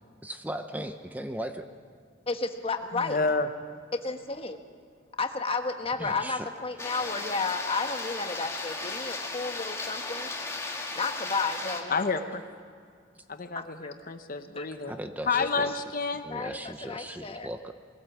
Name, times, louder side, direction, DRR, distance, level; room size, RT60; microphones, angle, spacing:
voice 1, 0.2-1.7 3.2-3.4 6.0-6.5 14.8-15.7 16.2-17.7, right 1 dB, 10° right, 7 dB, 0.7 m, -37 dB
voice 2, 2.3-3.2 4.0-4.6 5.2-10.3 10.9-12.0 14.6-14.7 15.3-15.5 16.3-17.5, left 4 dB, 30° left, 6 dB, 1.3 m, -32 dB
voice 3, 2.9-3.5 11.9-12.4 13.3-14.9 15.3-16.2, left 4 dB, 45° left, 9 dB, 0.9 m, -29 dB
sound 1, 6.8-11.8, left 3 dB, 15° left, 2.0 m, -36 dB
22.5 x 16.5 x 7.3 m, 2.1 s
head